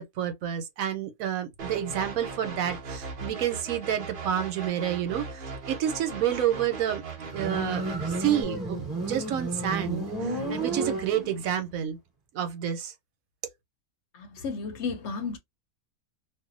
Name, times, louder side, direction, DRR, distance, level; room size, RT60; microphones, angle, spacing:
voice 1, 0.0-7.0 7.3-12.0 12.3-12.9, right 10 dB, 85° right, 1.1 m, -29 dB
sound 1, 1.6-8.4, right 4 dB, 50° right, 0.7 m, -39 dB
Motorcycle, 7.2-11.6, right 2 dB, 15° right, 1.2 m, -32 dB
voice 2, 14.1-15.4, left 5 dB, 65° left, 0.8 m, -33 dB
2.6 x 2.1 x 2.4 m
omnidirectional pair, 1.4 m